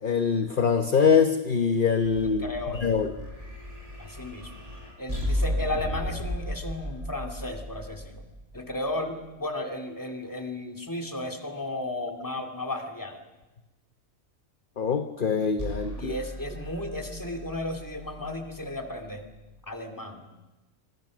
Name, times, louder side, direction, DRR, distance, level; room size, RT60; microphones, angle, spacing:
voice 1, 0.0-2.5 2.7-3.1 14.8-16.2, left 6 dB, 40° left, 7 dB, 1.1 m, -23 dB
sound 1, 2.0-9.3 15.6-19.7, equal, 25° right, 6.8 m, -36 dB
voice 2, 2.4-2.9 4.0-4.5 5.0-8.2 8.5-13.2 16.0-19.2 19.6-20.3, left 1 dB, 15° left, 3 dB, 2.4 m, -34 dB
27.5 x 23.5 x 6.3 m, 1.1 s
omnidirectional pair, 1.4 m